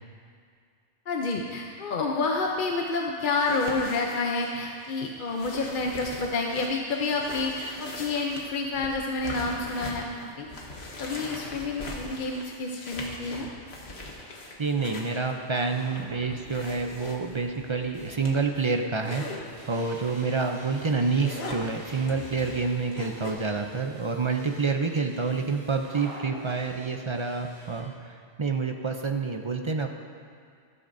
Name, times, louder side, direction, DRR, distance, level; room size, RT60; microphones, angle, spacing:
voice 1, 1.1-10.5 11.0-13.5, left 3 dB, 55° left, 0 dB, 0.8 m, -29 dB
sound 1, 3.3-19.4 20.0-20.2 20.6-23.3, left 2 dB, 70° left, 1.5 m, -41 dB
sound 2, 10.9-12.9 15.6-18.6 21.7-23.1 23.4-23.5 25.8-27.5, right 1 dB, 75° right, 2.4 m, -47 dB
voice 2, 14.6-29.9, right 4 dB, 40° right, 4 dB, 0.4 m, -28 dB
sound 3, 17.5-27.8, equal, 25° left, 3.5 m, -52 dB
13.5 x 13.0 x 2.6 m, 2.2 s
omnidirectional pair, 1.1 m